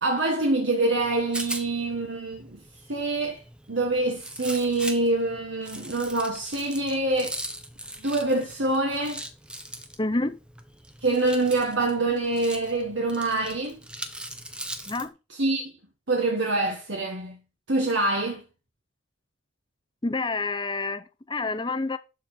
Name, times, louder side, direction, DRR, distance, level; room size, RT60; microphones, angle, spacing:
voice 1, 0.0-2.6 2.9-3.4 3.7-7.4 8.0-9.2 11.0-13.8 15.3-15.7 16.1-17.4 17.7-18.4, right 2 dB, 60° right, 1.6 m, -25 dB
Rattle, 0.9-15.1, right 1 dB, 5° right, 0.9 m, -40 dB
voice 2, 10.0-10.4 14.9-15.1 20.0-22.0, left 3 dB, 20° left, 0.7 m, -28 dB
12.0 x 4.5 x 5.0 m
head